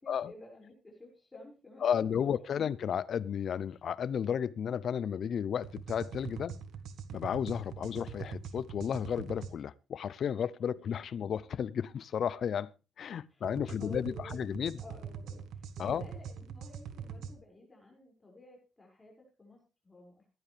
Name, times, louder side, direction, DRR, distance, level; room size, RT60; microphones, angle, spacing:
voice 1, 0.0-2.7 13.3-20.3, left 1 dB, 20° left, 6.1 m, -53 dB
voice 2, 1.8-6.6 7.1-12.7 13.0-14.8 15.8-16.1, left 8 dB, 60° left, 0.6 m, -33 dB
sound 1, 5.6-9.5 13.4-17.3, right 7 dB, 75° right, 1.4 m, -43 dB
16.5 x 11.5 x 3.4 m
cardioid pair, 90°, 0 cm